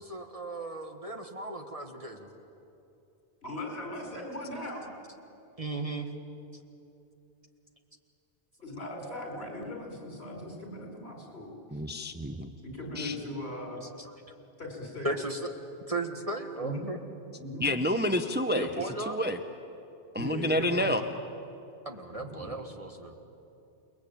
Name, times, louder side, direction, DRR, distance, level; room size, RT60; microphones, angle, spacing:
voice 1, 0.0-2.3 5.6-6.1 13.8-14.3 15.0-15.5 15.9-17.0 18.6-19.2 21.9-23.1, right 2 dB, 30° right, 5 dB, 1.7 m, -36 dB
voice 2, 3.4-4.9 6.3-6.7 8.6-11.8 12.6-13.8 14.6-15.1 16.6-16.9 17.4-17.7 20.2-21.1 22.1-22.7, left 1 dB, 65° left, 1 dB, 5.3 m, -39 dB
voice 3, 11.7-12.5 13.0-13.2 17.6-19.4 20.1-21.0, equal, 10° right, 6 dB, 0.8 m, -29 dB
29.0 x 21.0 x 8.7 m, 2.8 s
omnidirectional pair, 1.2 m